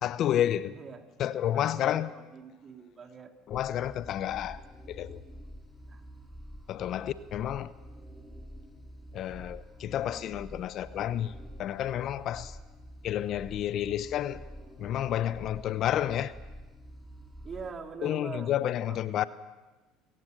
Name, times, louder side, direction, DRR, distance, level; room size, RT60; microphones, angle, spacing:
voice 1, 0.0-0.7 1.2-2.1 3.5-4.6 4.9-5.2 6.7-7.7 9.1-12.6 13.0-14.4 14.8-16.3 18.0-19.3, left 11 dB, 55° left, 0.8 m, -30 dB
voice 2, 0.7-1.0 1.5-3.3 5.9-6.0 17.4-18.6 18.9-19.0, right 5 dB, 35° right, 2.9 m, -43 dB
sound 1, 3.5-17.7, equal, ahead, 3.6 m, -48 dB
28.0 x 16.5 x 6.6 m
hypercardioid pair, 80°, 0 cm